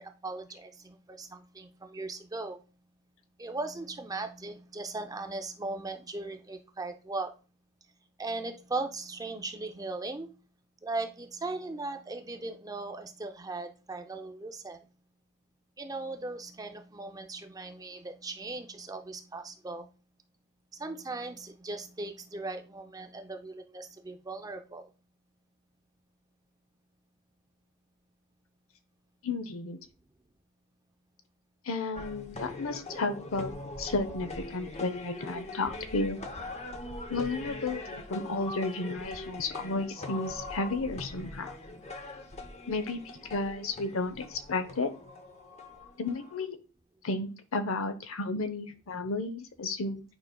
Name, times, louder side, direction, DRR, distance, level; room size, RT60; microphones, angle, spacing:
voice 1, 0.0-2.6 3.4-7.3 8.2-10.4 10.8-14.8 15.8-19.9 20.7-24.9, right 3 dB, 15° right, 0.5 m, -38 dB
voice 2, 29.2-29.8 31.6-36.2 37.1-41.6 42.7-44.9 46.0-46.6 47.0-50.0, left 3 dB, 65° left, 0.7 m, -33 dB
sound 1, 31.9-46.4, left 2 dB, 30° left, 0.8 m, -42 dB
9.0 x 5.0 x 2.3 m
head